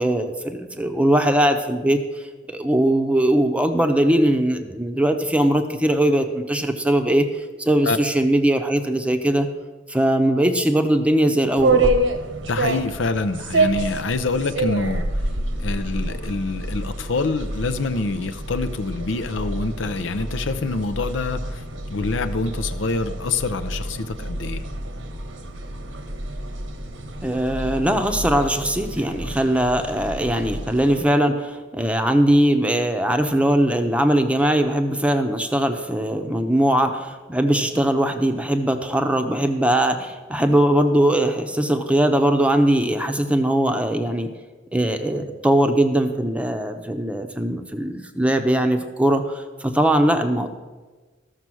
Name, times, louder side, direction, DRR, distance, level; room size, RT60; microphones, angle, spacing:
voice 1, 0.0-9.5 9.9-12.0 27.2-44.3 44.7-50.5, right 1 dB, 5° right, 6 dB, 0.7 m, -20 dB
sound 1, 11.5-31.0, right 2 dB, 85° right, 1.1 m, -28 dB
voice 2, 12.5-15.2 15.6-24.6, left 3 dB, 85° left, 11 dB, 0.7 m, -26 dB
13.5 x 6.6 x 6.2 m, 1.3 s
head